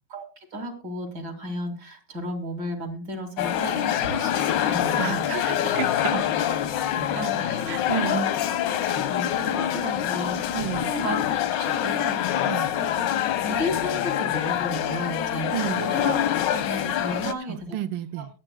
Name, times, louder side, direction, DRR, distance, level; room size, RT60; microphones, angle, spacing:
voice 1, 0.1-5.5 6.5-6.6 7.1-8.5 8.8-11.2 11.5-13.1 13.4-16.1 16.5-17.8 18.2-18.3, equal, 70° right, 3.0 m, -34 dB
sound 1, 3.4-17.3, left 11 dB, 90° left, 1.5 m, -25 dB
voice 2, 5.0-6.3 7.7-8.2 10.5-10.9 12.4-12.7 15.5-15.8 17.1-17.2 17.5-18.3, right 11 dB, 90° right, 1.5 m, -31 dB
21.5 x 7.5 x 2.3 m
omnidirectional pair, 1.9 m